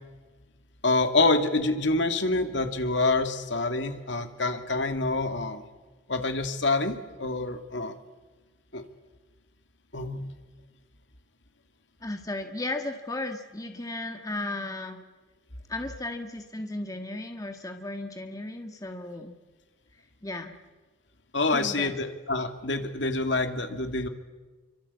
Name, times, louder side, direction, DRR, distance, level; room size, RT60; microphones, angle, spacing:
voice 1, 0.8-5.6 6.1-8.0 8.7-8.8 9.9-10.3 21.3-24.1, left 3 dB, 70° left, 7 dB, 2.4 m, -26 dB
voice 2, 12.0-15.0 15.7-19.3 20.2-20.5 21.5-21.9, left 2 dB, 20° left, 5 dB, 1.6 m, -35 dB
28.0 x 24.5 x 8.4 m, 1.3 s
head